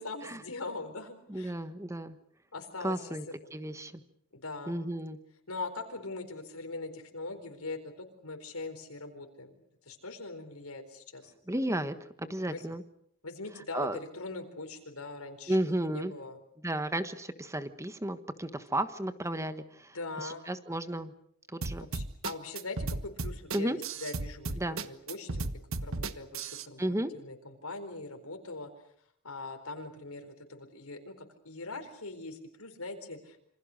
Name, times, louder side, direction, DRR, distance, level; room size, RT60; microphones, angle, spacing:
voice 1, 0.0-1.5 2.5-3.0 4.3-4.7 5.5-7.8 8.2-9.5 9.9-11.3 12.5-12.7 13.2-15.6 15.8-16.4 19.9-20.4 21.8-25.5 25.8-26.8 27.1-28.7 29.2-33.4, left 3 dB, 80° left, 5 dB, 4.4 m, -41 dB
voice 2, 1.3-2.2 2.8-3.3 3.5-4.0 4.7-5.2 11.5-12.8 13.7-14.0 15.5-16.1 16.6-21.1 21.5-21.9 23.5-23.8 24.6-24.8 26.8-27.1, right 1 dB, 15° right, 11 dB, 1.3 m, -33 dB
sound 1, 21.6-26.7, right 3 dB, 65° right, 1.3 m, -35 dB
27.5 x 26.0 x 6.6 m, 0.70 s
head